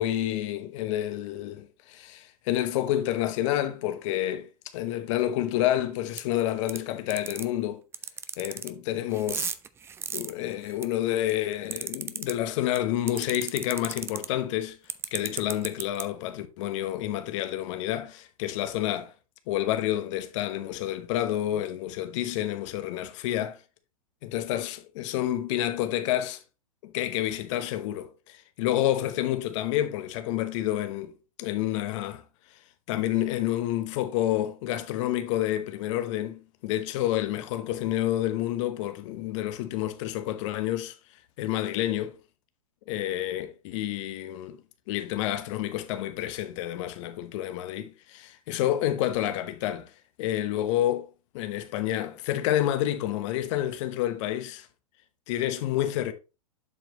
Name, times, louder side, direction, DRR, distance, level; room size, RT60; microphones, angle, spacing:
voice 1, 0.0-7.8 8.4-9.5 10.1-14.8 15.1-19.1 19.5-23.6 24.2-26.4 26.8-32.2 32.9-40.9 41.4-42.2 42.9-44.6 44.9-49.9 50.2-51.1 51.3-54.7 55.3-56.1, left 13 dB, 55° left, 1.0 m, -29 dB
sound 1, 6.2-6.3 6.7-6.8 7.1-7.4 7.9-8.7 9.1-10.8 11.3-12.3 12.7-12.8 13.1-14.2 14.9-16.0, right 7 dB, 15° right, 0.4 m, -33 dB
7.7 x 6.0 x 2.9 m
hypercardioid pair, 120°, 19 cm